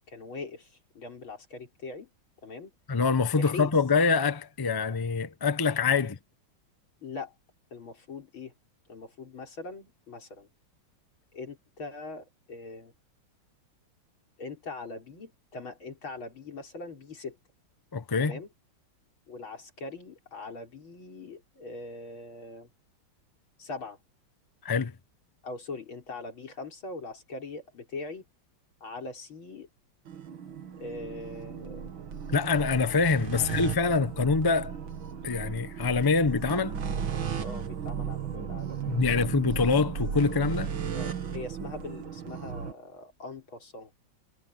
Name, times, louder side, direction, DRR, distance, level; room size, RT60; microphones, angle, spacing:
voice 1, 0.1-2.1 2.4-2.7 3.4-3.7 6.0-6.1 7.0-7.3 7.7-8.5 8.9-10.5 11.3-12.9 14.4-17.4 18.2-18.5 19.3-22.7 23.6-24.0 25.4-28.2 28.8-29.7 30.8-31.9 33.3-33.6 37.4-39.2 40.9-43.9, left 3 dB, 85° left, 5.4 m, -41 dB
voice 2, 2.9-6.1 17.9-18.4 24.6-24.9 32.3-34.7 35.2-36.8 38.9-40.7, left 4 dB, 40° left, 0.3 m, -25 dB
sound 1, 30.1-42.7, right 7 dB, 75° right, 2.5 m, -35 dB
omnidirectional pair, 2.2 m